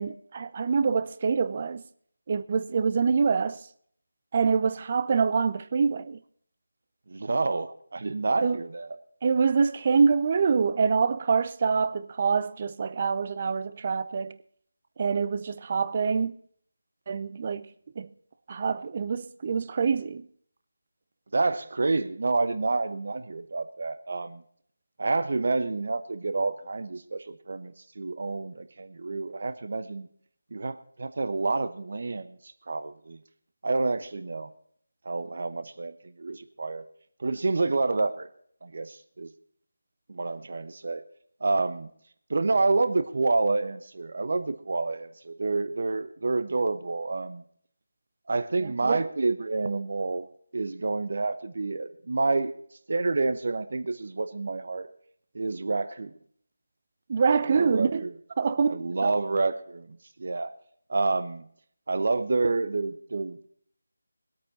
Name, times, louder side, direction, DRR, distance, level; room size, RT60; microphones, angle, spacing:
voice 1, 0.0-1.8 2.3-3.6 4.3-6.2 8.4-8.6 9.2-14.4 15.0-16.3 17.1-17.7 18.0-18.1 18.5-20.3 48.6-49.1 57.1-58.1 58.4-59.1, right 5 dB, 35° right, 0.6 m, -25 dB
voice 2, 7.1-8.9 21.3-24.4 25.0-30.1 30.5-32.4 32.7-33.2 33.6-34.5 35.0-35.9 36.2-36.9 37.2-38.3 38.6-39.3 40.1-41.0 41.4-41.9 42.3-47.4 48.3-50.3 50.5-52.5 52.9-54.9 55.3-56.1 57.5-58.1 58.6-60.5 60.9-61.5 61.9-63.5, right 3 dB, 55° right, 1.0 m, -28 dB
21.0 x 8.7 x 4.2 m
figure-of-eight pair, 165°, 0 cm